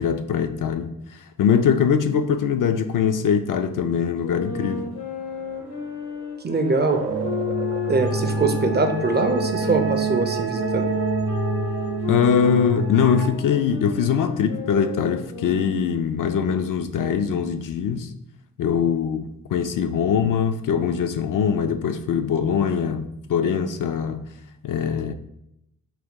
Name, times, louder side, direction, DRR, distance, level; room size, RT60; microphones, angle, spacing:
voice 1, 0.0-4.9 12.1-18.1 18.6-24.3 24.6-25.1, left 7 dB, 50° left, 8 dB, 0.4 m, -22 dB
sound 1, 4.2-9.8 10.5-16.0, left 7 dB, 75° left, 1.0 m, -32 dB
sound 2, 4.2-15.6, right 5 dB, 85° right, 0.5 m, -40 dB
voice 2, 6.4-7.0 7.9-10.9, right 3 dB, 25° right, 6 dB, 0.5 m, -22 dB
sound 3, 7.0-13.3, right 4 dB, 55° right, 0.9 m, -27 dB
3.8 x 2.2 x 3.6 m, 0.78 s
supercardioid pair, 45°, 41 cm